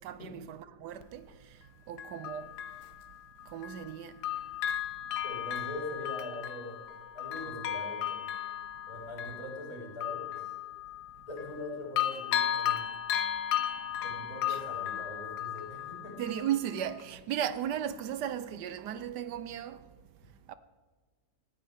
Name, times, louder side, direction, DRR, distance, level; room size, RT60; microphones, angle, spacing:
voice 1, 0.0-1.3 1.9-2.5 3.5-4.2 14.5-14.6 16.2-19.8 20.5-20.6, right 10 dB, 80° right, 1.3 m, -35 dB
Bell, 1.0-1.1 2.0-3.9 4.2-11.7 12.0-16.6 17.0-17.1, left 10 dB, 70° left, 1.2 m, -35 dB
voice 2, 5.2-8.2 8.9-10.5 11.3-12.8 13.8-16.2, left 1 dB, 55° left, 4.9 m, -42 dB
19.0 x 14.0 x 3.6 m
omnidirectional pair, 1.8 m